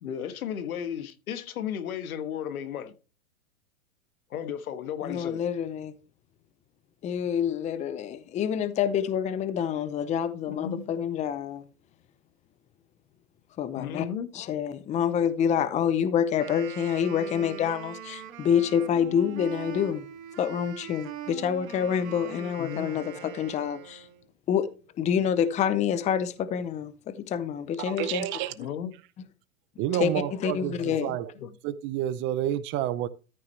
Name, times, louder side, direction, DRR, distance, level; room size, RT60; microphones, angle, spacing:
voice 1, 0.0-2.9 4.3-5.4 10.5-10.9 13.7-14.3 22.6-22.9 28.6-28.9 31.4-31.5, left 9 dB, 80° left, 1.4 m, -34 dB
voice 2, 5.0-5.9 7.0-11.6 13.6-14.1 14.3-20.1 20.4-24.1 24.5-24.7 25.0-28.3 29.9-31.2, left 8 dB, 15° left, 0.6 m, -27 dB
Wind instrument woodwind instrument, 16.3-24.3, right 9 dB, 65° right, 2.4 m, -42 dB
voice 3, 27.8-28.5 29.8-31.3 31.6-33.1, right 12 dB, 30° right, 0.6 m, -29 dB
13.5 x 5.9 x 3.2 m
hypercardioid pair, 130°, 43 cm